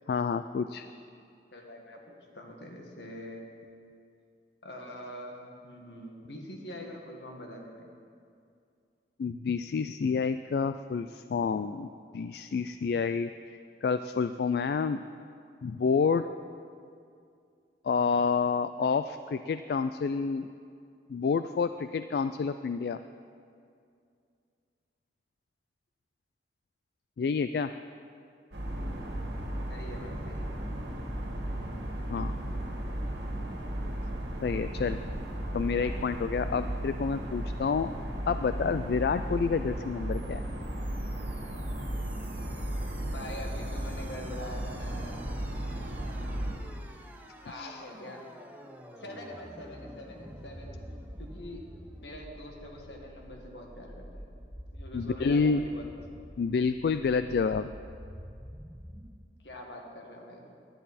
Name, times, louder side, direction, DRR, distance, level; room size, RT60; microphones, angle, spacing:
voice 1, 0.1-0.9 9.2-15.0 15.6-16.3 17.8-20.5 21.1-23.0 27.2-27.7 32.1-32.3 34.4-35.0 35.5-37.9 38.3-40.4 47.5-47.8 54.9-55.6 56.4-57.7, left 5 dB, 65° left, 11 dB, 0.3 m, -29 dB
voice 2, 1.5-3.9 4.6-7.9 29.7-30.5 43.1-45.2 47.4-48.3 49.0-50.8 51.2-51.6 52.0-54.3 54.7-55.9 59.4-60.5, left 1 dB, 85° left, 1 dB, 1.9 m, -44 dB
sound 1, 28.5-46.5, right 1 dB, 85° right, 2.0 m, -35 dB
sound 2, 40.1-59.1, equal, 10° right, 0.7 m, -48 dB
18.0 x 10.5 x 4.2 m, 2.4 s
head